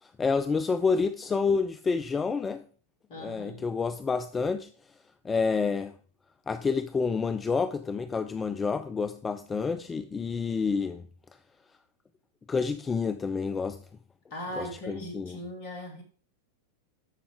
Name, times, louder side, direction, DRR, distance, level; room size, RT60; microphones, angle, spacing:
voice 1, 0.0-2.6 3.2-4.7 5.2-5.9 6.5-11.0 12.5-13.8 14.6-15.4, left 5 dB, 15° left, 0.4 m, -28 dB
voice 2, 3.1-3.7 14.3-16.0, left 1 dB, 50° left, 2.6 m, -39 dB
13.0 x 5.1 x 3.6 m
figure-of-eight pair, 90°, 0 cm